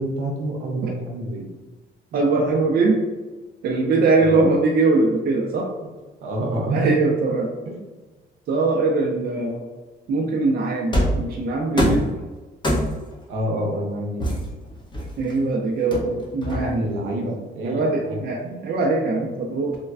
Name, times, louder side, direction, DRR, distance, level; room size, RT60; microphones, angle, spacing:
voice 1, 0.0-1.5 2.5-2.6 4.2-4.4 6.2-6.9 7.7-7.8 13.3-14.3 16.6-18.6 19.4-19.5, right 1 dB, 90° right, 0 dB, 0.7 m, -28 dB
voice 2, 2.1-3.0 3.6-5.7 6.7-7.5 8.5-9.6 10.1-12.1 15.2-16.8 17.6-19.8, right 3 dB, 55° right, -1 dB, 0.4 m, -21 dB
sound 1, 10.9-11.3 11.8-12.1 12.6-13.1 14.2-15.3 15.9-16.9, equal, 25° left, 0.7 m, -23 dB
3.2 x 2.2 x 2.3 m, 1.3 s
cardioid pair, 90°, 20 cm